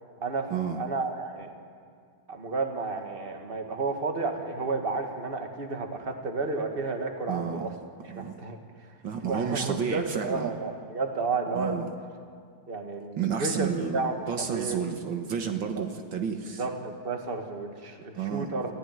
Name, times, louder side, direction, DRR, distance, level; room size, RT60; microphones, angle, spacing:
voice 1, 0.7-1.5 2.3-7.7 8.0-8.6 9.3-11.9 12.7-14.8 15.8-15.9 16.6-18.7, right 3 dB, 30° right, 4 dB, 2.1 m, -32 dB
voice 2, 7.3-7.7 8.1-8.3 9.0-10.5 11.5-11.8 13.2-14.0 14.3-16.6 18.2-18.7, right 7 dB, 70° right, 5 dB, 2.0 m, -31 dB
27.5 x 15.5 x 9.4 m, 2.2 s
omnidirectional pair, 2.2 m